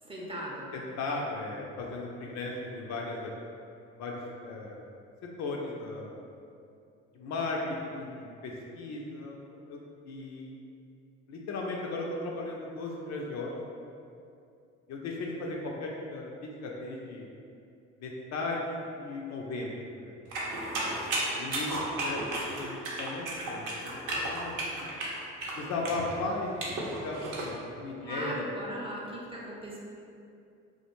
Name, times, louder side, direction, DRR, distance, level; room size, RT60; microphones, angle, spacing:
voice 1, 0.0-0.7 28.0-29.8, right 1 dB, 15° right, -5 dB, 0.6 m, -38 dB
voice 2, 0.7-3.3 4.0-4.8 5.4-6.2 7.1-9.8 10.0-10.6 11.3-13.6 13.8-13.9 14.9-17.3 18.0-20.2 21.4-22.2 22.6-24.9 25.6-28.3, left 2 dB, 50° left, -1 dB, 0.4 m, -36 dB
sound 1, 20.3-27.5, right 1 dB, 60° right, 0.7 m, -34 dB
2.2 x 2.1 x 2.9 m, 2.5 s
hypercardioid pair, 55°, 35 cm